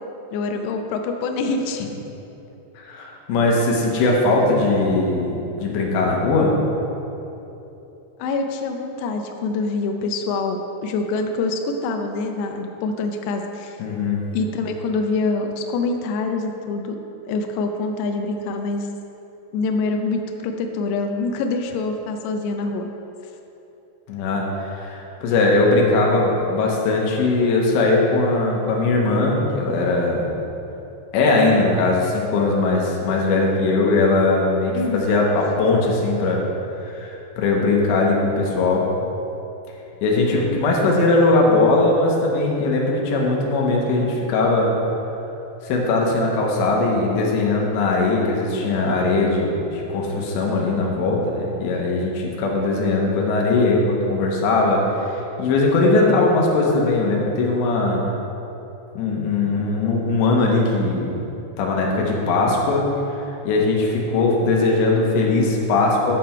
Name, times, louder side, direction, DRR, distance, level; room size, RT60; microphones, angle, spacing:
voice 1, 0.3-1.9 8.2-13.8 14.3-17.0 17.3-18.9 19.5-22.9 34.7-35.1, left 3 dB, 90° left, 4 dB, 2.4 m, -25 dB
voice 2, 2.8-6.6 13.8-14.2 24.1-24.4 24.8-30.3 31.1-36.4 36.9-37.1 37.4-38.8 40.0-44.7 45.6-58.0 58.9-61.2 61.6-62.9 63.5-66.2, left 3 dB, 75° left, -1 dB, 3.1 m, -20 dB
10.0 x 7.7 x 4.5 m, 3.0 s
omnidirectional pair, 5.7 m